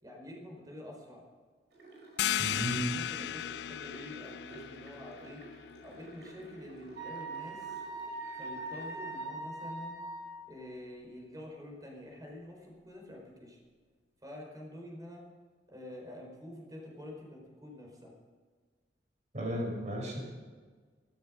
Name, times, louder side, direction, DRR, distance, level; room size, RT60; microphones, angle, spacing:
voice 1, 0.0-1.2 2.6-5.4 5.8-7.8 8.4-10.0 10.5-13.6 14.2-15.2 15.7-18.1, left 1 dB, 20° right, 0 dB, 4.8 m, -47 dB
sound 1, 1.7-9.2, right 2 dB, 70° right, 5.6 m, -54 dB
sound 2, 2.2-7.6, left 11 dB, 70° left, 0.4 m, -37 dB
voice 2, 2.4-2.8 19.3-20.2, equal, 40° right, -1 dB, 5.9 m, -34 dB
Wind instrument woodwind instrument, 7.0-10.4, right 2 dB, 85° right, 4.0 m, -41 dB
14.5 x 14.0 x 6.4 m, 1.5 s
head